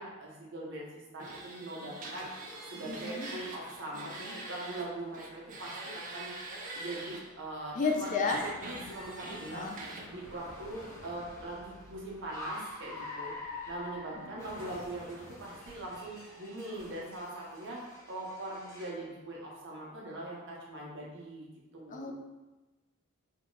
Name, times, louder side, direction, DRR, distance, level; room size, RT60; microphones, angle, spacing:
voice 1, 0.0-21.5 21.7-22.1, right 1 dB, 60° right, -4 dB, 0.9 m, -42 dB
sound 1, 1.2-4.9 5.1-7.2 7.8-10.1, right 2 dB, 40° right, 0.5 m, -44 dB
Car, 2.2-19.0, left 2 dB, 15° left, 1.1 m, -49 dB
voice 2, 2.8-3.3 7.8-8.4 9.2-9.8 14.2-14.3 21.9-22.1, left 4 dB, 35° left, 3 dB, 0.3 m, -32 dB
2.9 x 2.3 x 3.8 m, 1.1 s
head